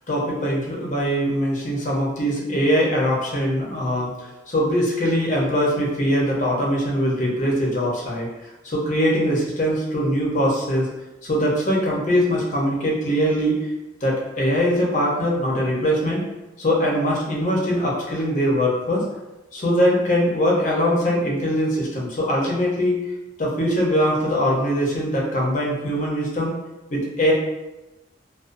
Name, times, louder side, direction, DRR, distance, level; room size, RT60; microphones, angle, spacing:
voice 1, 0.1-8.3 8.6-10.9 11.2-13.7 14.0-16.2 16.6-19.1 19.5-23.1 23.4-26.5 26.9-27.3, equal, 40° left, -3 dB, 0.6 m, -22 dB
2.4 x 2.3 x 2.5 m, 0.99 s
head